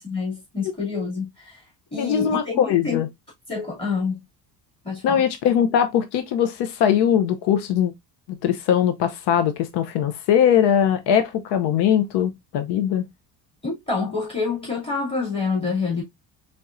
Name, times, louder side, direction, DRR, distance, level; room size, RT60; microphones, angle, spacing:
voice 1, 0.0-1.6 1.9-3.0 3.5-4.2 4.8-5.2 13.6-16.0, left 4 dB, 15° left, 2.4 m, -27 dB
voice 2, 2.0-3.1 5.0-7.9 8.4-13.0, left 9 dB, 90° left, 0.7 m, -21 dB
4.2 x 3.5 x 2.5 m
cardioid pair, 175°, 39 cm